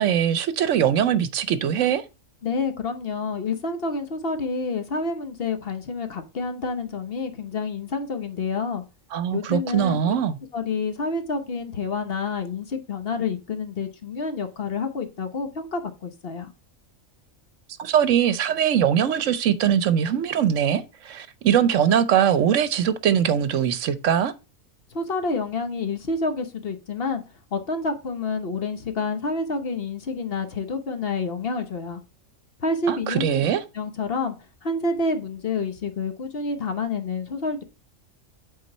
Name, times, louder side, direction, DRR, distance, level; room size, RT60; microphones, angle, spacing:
voice 1, 0.0-2.0 9.1-10.4 17.8-24.3 32.9-33.6, right 9 dB, 70° right, 1.0 m, -21 dB
voice 2, 2.4-8.8 9.3-10.1 10.5-16.5 24.9-27.2 27.5-32.0 32.6-33.4 33.7-34.3 34.6-37.6, left 3 dB, 50° left, 1.1 m, -28 dB
8.2 x 4.0 x 4.2 m
omnidirectional pair, 1.4 m